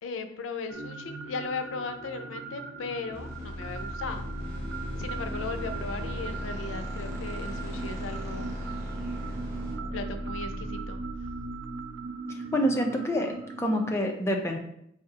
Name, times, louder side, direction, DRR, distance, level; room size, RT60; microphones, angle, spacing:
voice 1, 0.0-4.3 5.0-8.7 9.3-11.0, left 4 dB, 85° left, 8 dB, 0.4 m, -37 dB
sound 1, 0.7-14.0, right 4 dB, 80° right, 0.5 m, -39 dB
sound 2, 3.1-9.8, left 1 dB, 55° right, 1.2 m, -44 dB
sound 3, 3.3-12.1, equal, 15° right, 1.0 m, -38 dB
voice 2, 12.5-13.3 13.6-14.6, equal, 15° left, 2 dB, 0.4 m, -26 dB
4.6 x 3.4 x 2.8 m, 0.75 s
head